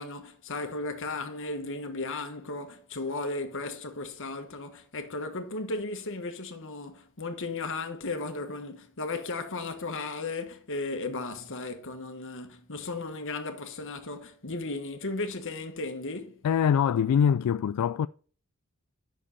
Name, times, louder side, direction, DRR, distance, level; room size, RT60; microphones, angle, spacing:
voice 1, 0.0-16.3, left 3 dB, 60° left, 1.5 m, -35 dB
voice 2, 16.4-18.1, left 8 dB, 85° left, 0.3 m, -23 dB
10.0 x 6.5 x 4.1 m
head